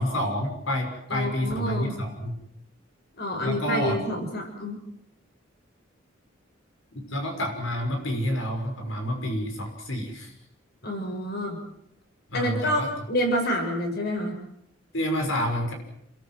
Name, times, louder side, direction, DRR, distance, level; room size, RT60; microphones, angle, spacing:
voice 1, 0.0-2.4 3.4-3.9 6.9-10.3 12.3-12.9 14.9-15.7, equal, 85° left, 4 dB, 6.2 m, -28 dB
voice 2, 1.1-1.9 3.2-4.8 10.8-11.6 12.3-14.3, equal, 55° left, 4 dB, 6.6 m, -28 dB
29.0 x 22.0 x 7.7 m, 0.74 s
head